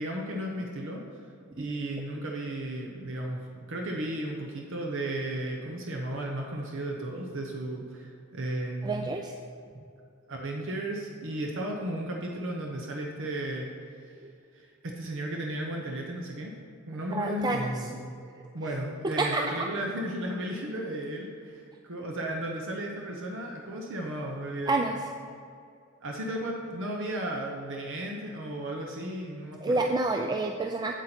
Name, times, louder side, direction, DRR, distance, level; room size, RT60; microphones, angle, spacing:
voice 1, 0.0-9.1 10.3-13.7 14.0-14.1 14.5-16.5 16.9-18.1 18.5-24.8 26.0-29.9, right 1 dB, 60° right, 0 dB, 0.9 m, -34 dB
voice 2, 8.8-9.3 14.2-14.3 17.1-17.9 18.4-18.5 19.0-19.4 24.7-25.1 29.6-30.9, right 2 dB, 20° right, 3 dB, 0.3 m, -29 dB
8.2 x 7.9 x 4.4 m, 2.4 s
head